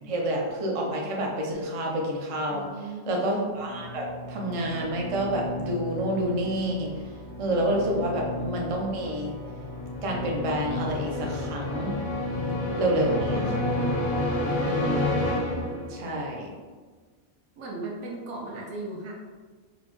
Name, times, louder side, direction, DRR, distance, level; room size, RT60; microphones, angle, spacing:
voice 1, 0.0-6.9 7.4-9.3 10.0-12.0 12.8-13.6 14.6-15.2 15.9-16.5, right 1 dB, 45° right, -1 dB, 0.4 m, -28 dB
voice 2, 2.5-3.2 12.6-13.7 17.6-19.1, right 2 dB, 75° right, -2 dB, 1.1 m, -37 dB
sound 1, 3.6-16.2, left 1 dB, 40° left, 0.6 m, -31 dB
3.8 x 2.1 x 3.0 m, 1.4 s
omnidirectional pair, 1.2 m